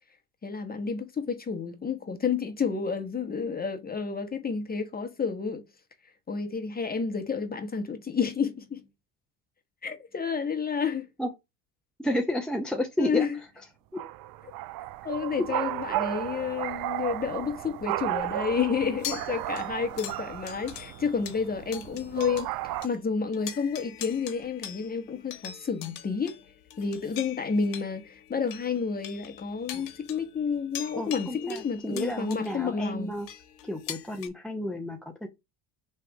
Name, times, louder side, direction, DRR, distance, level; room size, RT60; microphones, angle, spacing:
voice 1, 0.4-5.6 6.3-8.9 9.8-11.1 13.0-13.4 15.0-26.4 26.8-33.2, left 5 dB, 20° left, 1.0 m, -30 dB
voice 2, 12.0-13.3 13.9-14.0 29.7-29.9 31.0-33.3 33.6-35.3, left 1 dB, ahead, 0.6 m, -31 dB
sound 1, 13.9-22.9, right 15 dB, 50° right, 0.4 m, -34 dB
sound 2, 19.0-22.6 22.8-23.0 23.3-34.3, left 11 dB, 80° left, 1.0 m, -43 dB
3.3 x 3.2 x 4.8 m
supercardioid pair, 85°, 49 cm